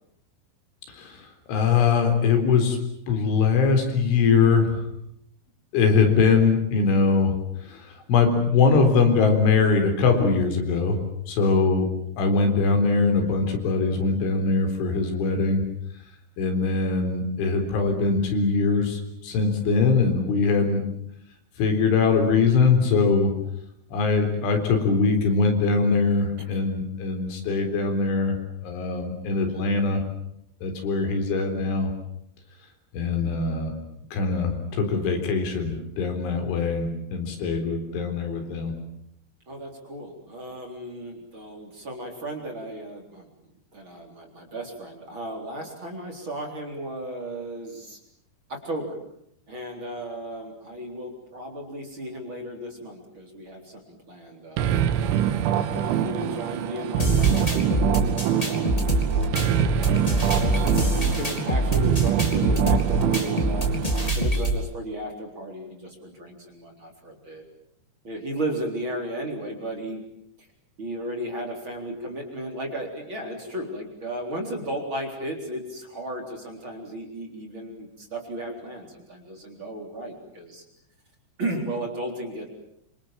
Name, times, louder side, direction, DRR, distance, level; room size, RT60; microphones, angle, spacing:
voice 1, 0.9-2.8 3.1-4.7 5.7-7.3 7.7-11.0 11.3-11.9 12.2-15.6 16.4-20.8 21.6-23.3 23.9-28.4 28.6-30.0 30.6-31.9 32.9-33.7 34.1-38.7, left 4 dB, 90° left, 5 dB, 6.3 m, -22 dB
voice 2, 39.5-43.3 43.7-48.0 48.5-49.0 49.5-54.7 55.4-63.7 64.1-67.4 68.0-70.0 70.8-80.6 81.4-82.5, right 1 dB, 30° right, 1 dB, 4.2 m, -35 dB
sound 1, 54.6-64.1, right 10 dB, 90° right, 3.8 m, -24 dB
sound 2, 57.0-64.6, right 1 dB, 10° left, 2.9 m, -25 dB
27.0 x 26.0 x 7.4 m, 0.74 s
omnidirectional pair, 5.3 m